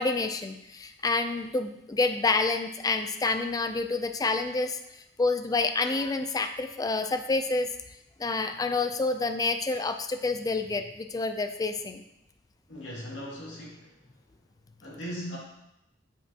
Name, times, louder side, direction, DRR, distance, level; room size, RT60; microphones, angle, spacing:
voice 1, 0.0-4.8 5.2-7.7 8.2-12.0, left 3 dB, 20° left, 8 dB, 0.3 m, -28 dB
voice 2, 12.7-14.3 14.8-15.4, equal, 70° left, -5 dB, 2.2 m, -39 dB
8.3 x 4.6 x 2.8 m, 0.85 s
head